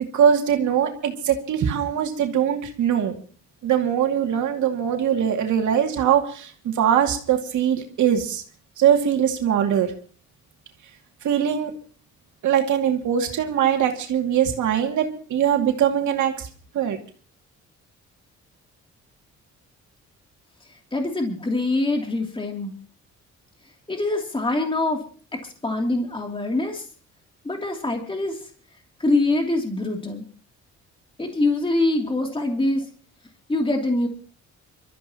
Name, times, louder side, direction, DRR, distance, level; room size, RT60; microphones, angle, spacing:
voice 1, 0.1-3.2 3.6-8.4 8.8-9.9 11.2-11.7 12.4-16.5 16.7-17.0, right 9 dB, 75° right, 3 dB, 2.6 m, -21 dB
voice 2, 20.9-22.7 23.9-25.0 25.6-26.8 27.4-28.4 29.0-30.2 31.2-32.9 33.5-34.1, left 2 dB, 15° left, 2 dB, 3.0 m, -24 dB
25.5 x 14.0 x 3.0 m, 0.41 s
cardioid pair, 90°, 30 cm